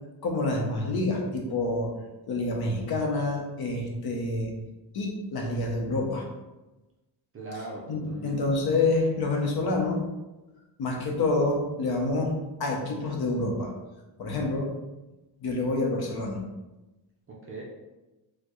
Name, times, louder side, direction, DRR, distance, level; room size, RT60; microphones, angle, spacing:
voice 1, 0.2-2.0 2.3-4.5 4.9-6.3 7.9-10.1 10.8-13.7 14.2-14.7 15.4-16.4, left 2 dB, 50° left, 1 dB, 0.7 m, -27 dB
voice 2, 7.3-8.4 17.3-17.6, right 2 dB, 30° right, -3 dB, 0.4 m, -40 dB
4.3 x 2.2 x 3.0 m, 1.1 s
cardioid pair, 165°, 47 cm